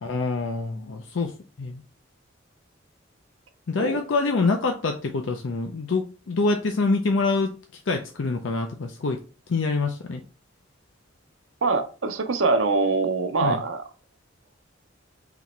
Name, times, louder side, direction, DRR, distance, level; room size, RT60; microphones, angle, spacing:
voice 1, 0.0-1.3 1.6-1.8 3.7-7.5 7.9-9.2 9.5-10.2 13.4-13.6, left 3 dB, 75° left, 4 dB, 0.5 m, -25 dB
voice 2, 11.6-13.8, right 4 dB, 85° right, 6 dB, 0.7 m, -23 dB
4.1 x 3.0 x 4.2 m, 0.36 s
head